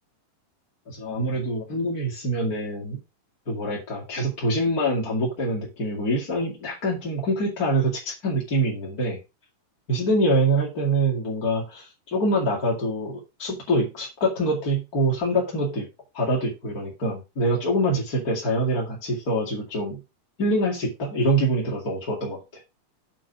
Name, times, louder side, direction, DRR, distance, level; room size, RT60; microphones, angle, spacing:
voice 1, 0.9-3.0 3.4-9.2 9.9-15.8 16.1-20.0 20.4-22.6, right 1 dB, 30° left, -3 dB, 1.7 m, -25 dB
7.6 x 4.4 x 7.0 m, 0.27 s
omnidirectional pair, 4.9 m